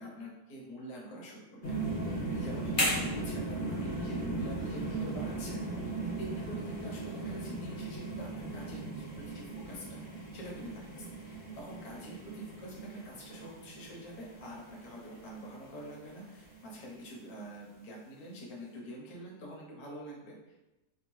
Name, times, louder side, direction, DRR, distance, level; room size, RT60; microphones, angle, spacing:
voice 1, 0.0-2.1 2.3-10.0 10.3-20.6, equal, 70° left, -3 dB, 1.3 m, -46 dB
sound 1, 1.6-16.5 17.0-17.1, right 2 dB, 40° left, 0.8 m, -37 dB
3.4 x 2.2 x 3.0 m, 1.0 s
omnidirectional pair, 1.7 m